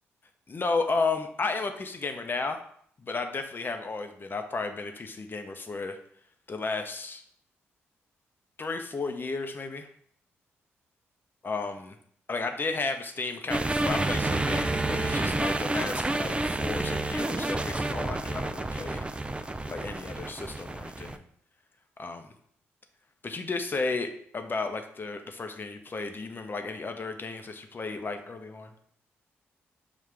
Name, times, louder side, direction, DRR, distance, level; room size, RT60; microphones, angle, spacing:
voice 1, 0.5-2.6 3.0-6.0 6.5-7.2 8.6-9.9 11.4-11.9 12.3-19.1 19.7-21.2 22.0-22.3 23.2-28.7, left 3 dB, 40° left, 6 dB, 0.7 m, -33 dB
sound 1, 13.5-21.2, right 2 dB, 20° right, 0.4 m, -29 dB
5.7 x 2.4 x 3.3 m, 0.64 s
supercardioid pair, 45°, 6 cm